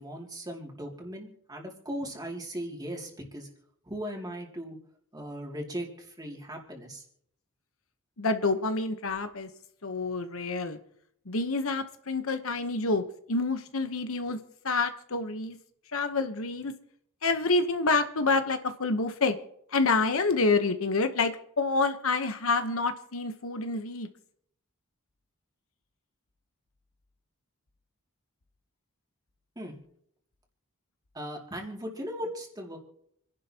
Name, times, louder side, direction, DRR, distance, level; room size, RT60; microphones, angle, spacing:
voice 1, 0.0-3.5 3.9-4.8 5.1-7.0 29.6-29.8 31.1-32.8, equal, 20° right, 0 dB, 2.5 m, -38 dB
voice 2, 8.2-9.5 9.8-10.8 11.3-13.0 13.3-14.4 14.6-15.6 15.9-16.7 17.2-19.4 19.7-24.1, left 3 dB, 70° left, 9 dB, 1.0 m, -27 dB
28.0 x 11.0 x 2.9 m, 0.69 s
head